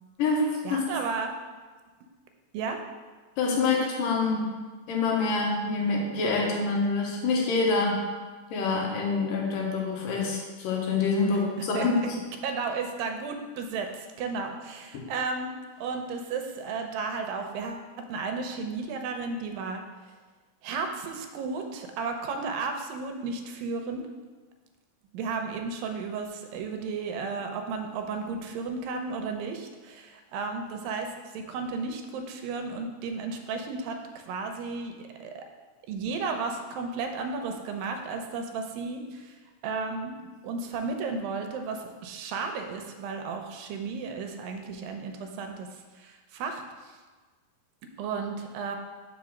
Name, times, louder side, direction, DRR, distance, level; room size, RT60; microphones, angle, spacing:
voice 1, 0.6-1.3 2.5-2.8 11.3-11.4 11.7-12.1 12.4-15.5 15.8-19.8 20.6-24.0 25.1-35.5 35.9-39.3 39.6-40.2 40.4-47.0 48.0-48.8, right 4 dB, 85° right, 5 dB, 2.4 m, -34 dB
voice 2, 3.4-4.5 4.9-8.1 8.5-12.0 14.9-15.0, left 4 dB, 75° left, -1 dB, 2.7 m, -26 dB
5.6 x 4.9 x 6.2 m, 1.4 s
omnidirectional pair, 4.0 m